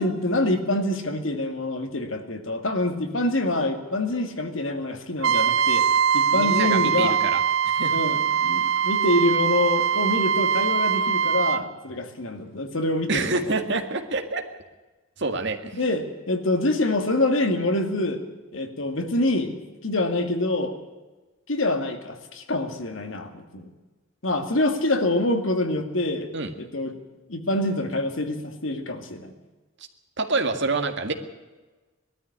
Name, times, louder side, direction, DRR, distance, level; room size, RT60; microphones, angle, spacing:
voice 1, 0.0-5.9 6.1-7.1 7.9-13.4 15.7-18.2 18.5-20.7 21.5-23.7 24.2-26.3 26.6-27.0 27.3-29.3, left 1 dB, 75° left, 6 dB, 2.4 m, -26 dB
Trumpet, 5.2-11.6, right 7 dB, 80° right, 0.6 m, -22 dB
voice 2, 6.3-7.4 7.7-7.9 13.1-14.4 15.2-15.8 26.3-26.5 30.2-31.1, right 3 dB, 60° right, 6 dB, 2.0 m, -27 dB
20.5 x 13.0 x 9.9 m, 1.2 s
head